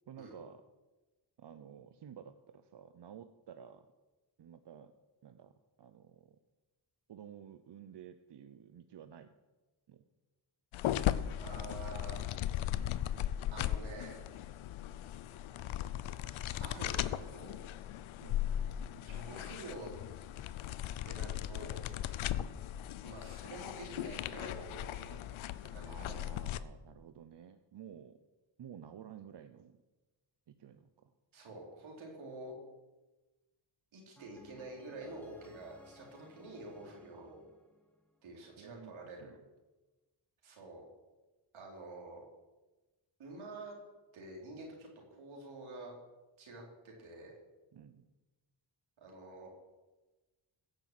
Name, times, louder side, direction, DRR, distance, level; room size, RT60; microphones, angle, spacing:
voice 1, 0.1-0.6 1.4-3.9 4.4-4.9 5.2-6.4 7.1-9.3 9.9-10.0 18.2-18.6 25.8-28.2 28.6-29.8 30.5-31.1 37.1-37.4 38.4-39.4 47.7-48.1, right 8 dB, 60° right, 10 dB, 0.8 m, -53 dB
sound 1, 10.7-26.6, left 12 dB, 90° left, 0.6 m, -37 dB
voice 2, 11.4-12.2 13.5-14.2 16.6-17.7 19.0-19.9 21.1-21.8 23.0-25.2 25.7-26.2 31.3-32.6 33.9-37.4 38.2-39.3 40.4-40.8 41.5-42.2 43.2-43.8 44.1-45.9 46.4-47.4 49.0-49.5, right 2 dB, 90° right, -1 dB, 3.9 m, -48 dB
sound 2, 34.2-38.2, left 1 dB, 5° left, 2.2 m, -59 dB
15.5 x 6.8 x 7.7 m, 1.1 s
cardioid pair, 70°, 47 cm